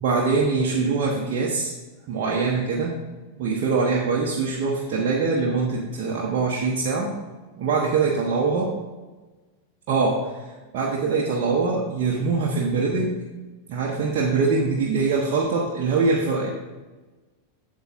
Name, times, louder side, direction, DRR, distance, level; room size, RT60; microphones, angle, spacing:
voice 1, 0.0-1.7 2.1-2.9 3.4-7.1 7.6-8.7 9.9-10.5 10.7-13.2 13.7-16.5, right 4 dB, 45° right, -3 dB, 1.0 m, -23 dB
8.1 x 7.3 x 2.6 m, 1.2 s
figure-of-eight pair, 90°, 0 cm